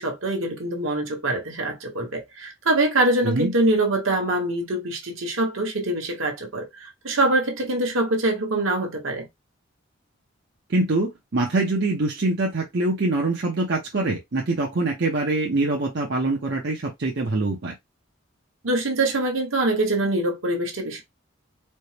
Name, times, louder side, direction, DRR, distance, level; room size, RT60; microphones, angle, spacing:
voice 1, 0.0-9.3 18.6-21.0, right 2 dB, 75° right, 1.2 m, -24 dB
voice 2, 10.7-17.7, right 2 dB, 55° right, 0.7 m, -24 dB
4.3 x 2.1 x 3.2 m
head